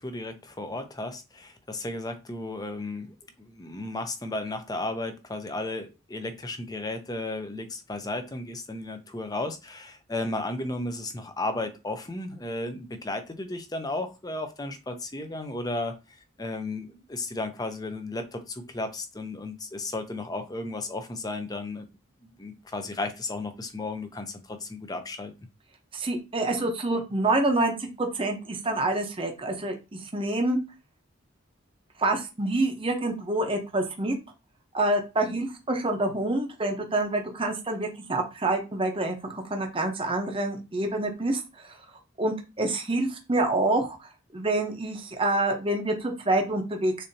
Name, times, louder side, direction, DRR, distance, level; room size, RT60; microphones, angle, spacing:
voice 1, 0.0-16.0 16.4-21.9 22.4-25.3, left 2 dB, 20° left, 0.7 m, -34 dB
voice 2, 25.9-30.6 32.0-34.1 34.7-41.8 42.2-47.0, right 2 dB, 25° right, 0.8 m, -27 dB
6.6 x 2.7 x 2.8 m
head